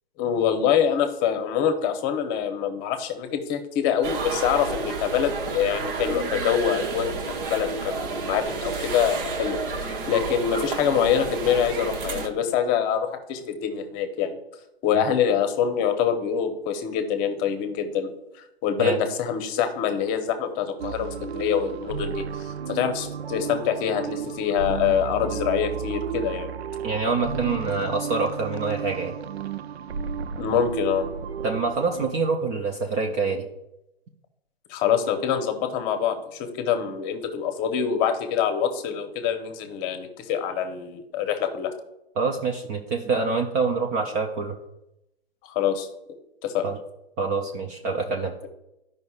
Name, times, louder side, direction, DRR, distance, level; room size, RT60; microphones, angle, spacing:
voice 1, 0.2-7.1 7.4-14.4 14.8-26.5 30.4-31.1 34.7-41.7 45.5-45.9 46.4-46.6, left 8 dB, 30° left, 7 dB, 0.9 m, -25 dB
sound 1, 4.0-12.3, right 4 dB, 55° right, 1.2 m, -31 dB
sound 2, 20.8-32.1, right 7 dB, 90° right, 0.5 m, -33 dB
voice 2, 26.8-29.1 31.4-33.5 42.2-44.6 46.6-46.8 47.2-48.3, right 4 dB, 20° right, 3 dB, 0.4 m, -26 dB
12.0 x 5.3 x 2.4 m, 0.88 s
hypercardioid pair, 125°, 31 cm